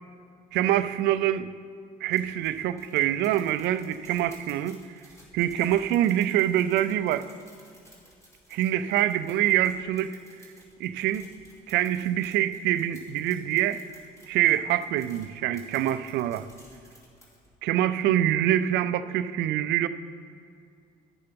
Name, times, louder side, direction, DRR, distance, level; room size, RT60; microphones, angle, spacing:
voice 1, 0.5-1.5 2.0-4.8 5.3-7.3 8.5-10.2 10.8-11.3 11.7-13.8 14.3-16.5 17.6-19.9, right 12 dB, 85° right, 13 dB, 0.5 m, -25 dB
sound 1, 2.1-17.5, equal, 15° left, 2.7 m, -55 dB
11.0 x 6.8 x 5.2 m, 2.3 s
cardioid pair, 110°, 17 cm